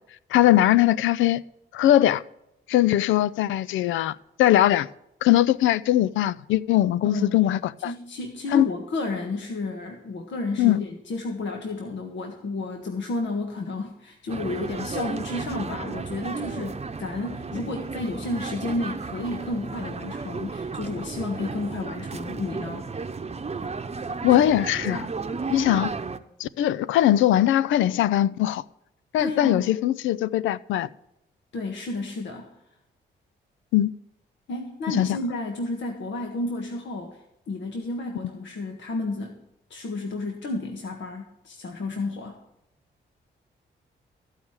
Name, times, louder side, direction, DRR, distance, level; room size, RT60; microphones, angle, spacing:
voice 1, 0.3-1.4 1.7-2.2 2.7-4.9 5.2-7.9 8.5-8.7 10.6-10.8 24.2-25.1 25.5-25.9 26.4-28.6 29.1-30.9 33.7-33.9 34.9-35.1, left 13 dB, 85° left, 0.4 m, -21 dB
voice 2, 7.0-7.4 7.8-22.9 24.3-24.4 29.2-29.7 31.5-32.5 34.5-37.2 37.5-39.4 39.7-42.4, left 2 dB, 70° left, 1.5 m, -31 dB
sound 1, 14.3-26.2, right 4 dB, 35° right, 0.9 m, -34 dB
14.5 x 4.9 x 8.9 m
supercardioid pair, 55°, 20 cm